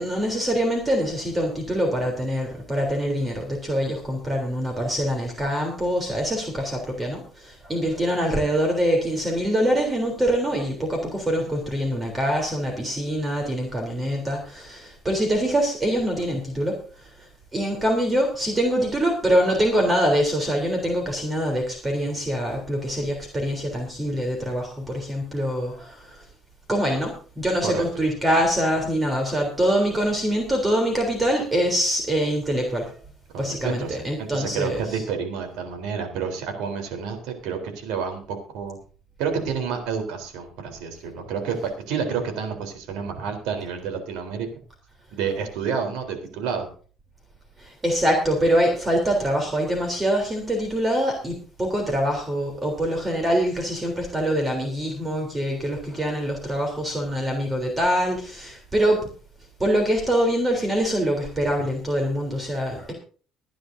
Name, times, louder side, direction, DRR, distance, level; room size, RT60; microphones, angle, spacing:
voice 1, 0.0-26.2 26.7-32.9 33.4-35.0 45.2-45.4 47.6-59.1 59.6-62.9, equal, 20° right, 2 dB, 3.5 m, -24 dB
voice 2, 33.3-38.8 39.2-44.5 45.1-46.7, right 6 dB, 90° right, 5 dB, 3.8 m, -29 dB
24.0 x 10.5 x 2.7 m, 0.40 s
cardioid pair, 115°, 0 cm